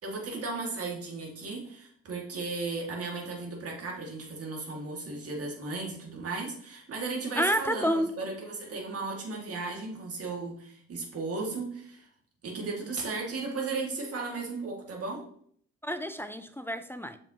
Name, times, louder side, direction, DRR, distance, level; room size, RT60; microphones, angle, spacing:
voice 1, 0.0-12.1 12.4-15.2, right 3 dB, 50° right, 2.1 m, -35 dB
voice 2, 7.4-8.1 15.8-17.2, equal, 10° left, 0.4 m, -29 dB
6.8 x 5.4 x 2.9 m
cardioid pair, 90°, 30 cm